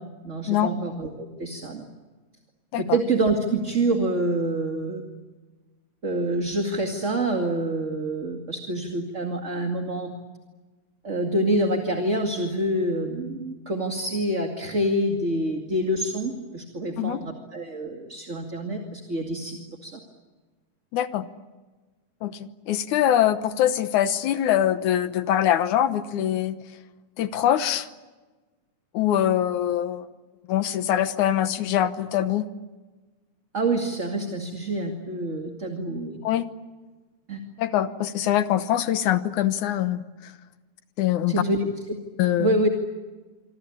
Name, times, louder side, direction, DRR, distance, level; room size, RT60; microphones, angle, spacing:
voice 1, 0.2-1.8 2.8-5.0 6.0-10.1 11.0-20.0 33.5-36.2 37.3-37.4 41.3-41.6 42.4-42.7, right 1 dB, 25° right, 3 dB, 2.2 m, -26 dB
voice 2, 20.9-21.3 22.2-26.6 27.2-27.9 28.9-30.1 30.5-32.5 36.2-36.5 37.6-40.3 41.0-41.4 42.2-42.6, left 11 dB, 85° left, 11 dB, 2.5 m, -23 dB
26.5 x 25.5 x 8.6 m, 1.2 s
omnidirectional pair, 3.4 m